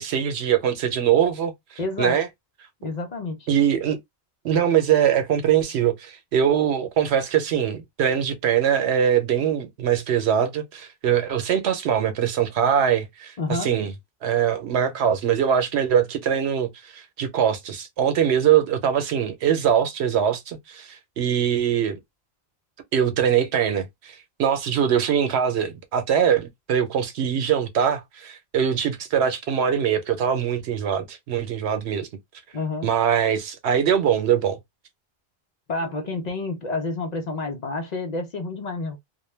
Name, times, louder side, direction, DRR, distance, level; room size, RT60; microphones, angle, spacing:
voice 1, 0.0-1.5 2.0-2.3 3.5-4.0 4.4-13.9 14.2-22.0 22.9-32.1 32.8-34.6, right 8 dB, 90° right, 0.9 m, -22 dB
voice 2, 1.8-2.2 2.8-3.5 13.4-13.7 32.5-32.9 35.7-39.0, left 3 dB, 50° left, 0.5 m, -29 dB
2.2 x 2.2 x 3.1 m
omnidirectional pair, 1.1 m